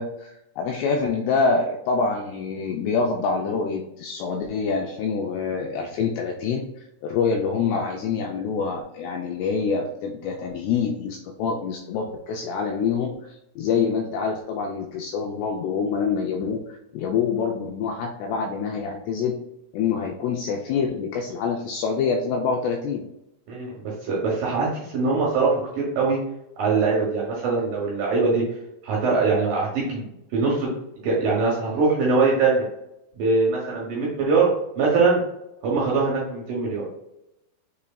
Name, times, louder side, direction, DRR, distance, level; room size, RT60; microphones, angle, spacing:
voice 1, 0.0-6.6 7.0-19.4 19.7-23.0, left 5 dB, 85° left, 1 dB, 2.4 m, -26 dB
voice 2, 23.5-26.2 26.6-28.4 28.8-30.7 31.0-32.7 33.2-35.2 35.6-37.0, right 4 dB, 70° right, -4 dB, 2.2 m, -22 dB
6.8 x 3.2 x 2.3 m, 0.84 s
omnidirectional pair, 5.2 m